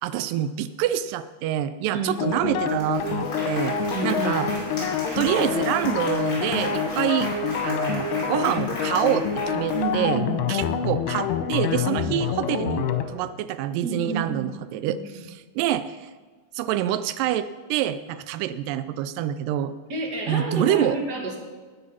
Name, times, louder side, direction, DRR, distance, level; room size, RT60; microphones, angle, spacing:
voice 1, 0.0-3.8 4.0-4.5 5.2-7.3 7.6-10.2 10.5-15.0 15.6-16.1 16.5-19.7 20.3-21.0, right 11 dB, 85° right, 13 dB, 1.9 m, -26 dB
sound 1, 2.2-13.0, left 7 dB, 85° left, 2.9 m, -27 dB
Applause, 2.3-2.4 2.7-10.2, left 1 dB, 30° left, 5.5 m, -36 dB
voice 2, 3.9-4.5 9.7-10.4 13.8-14.5 14.9-15.2 19.9-21.4, right 3 dB, 35° right, 0 dB, 1.9 m, -30 dB
12.5 x 9.3 x 5.8 m, 1.4 s
omnidirectional pair, 4.4 m